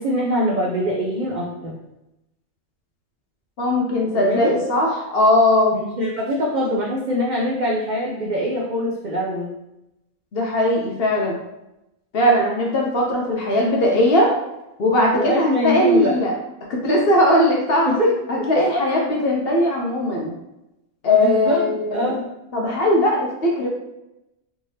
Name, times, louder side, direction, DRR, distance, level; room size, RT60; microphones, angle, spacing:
voice 1, 0.0-1.7 4.1-4.6 5.7-9.5 15.1-16.1 17.9-18.1 21.1-22.2, equal, 60° right, -3 dB, 0.5 m, -23 dB
voice 2, 3.6-5.8 10.3-11.4 12.1-14.3 14.8-16.3 16.7-17.9 18.3-20.3 21.0-22.1 22.5-23.7, left 1 dB, 55° left, -2 dB, 0.7 m, -19 dB
3.5 x 3.3 x 2.7 m, 0.92 s
omnidirectional pair, 1.4 m